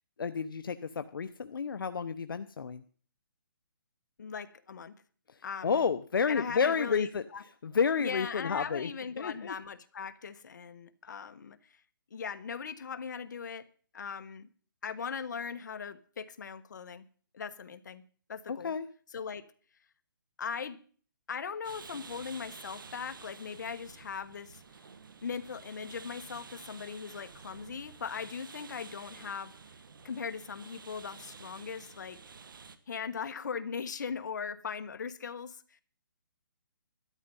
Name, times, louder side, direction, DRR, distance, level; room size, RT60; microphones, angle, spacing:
voice 1, 0.2-2.8 5.6-7.2 7.6-8.9 9.2-9.5 18.5-18.9, left 6 dB, 75° left, 0.9 m, -30 dB
voice 2, 4.2-5.0 5.4-5.9 6.3-7.4 8.0-11.8 12.1-13.7 13.9-14.5 14.8-17.1 17.3-18.0 18.3-18.7 19.1-19.4 20.4-20.8 21.3-24.6 25.2-29.5 30.0-32.2 32.9-35.8, left 6 dB, 55° left, 1.3 m, -39 dB
sound 1, 21.6-32.8, right 5 dB, 70° right, 1.6 m, -50 dB
12.5 x 11.5 x 5.5 m
hypercardioid pair, 165°, 11 cm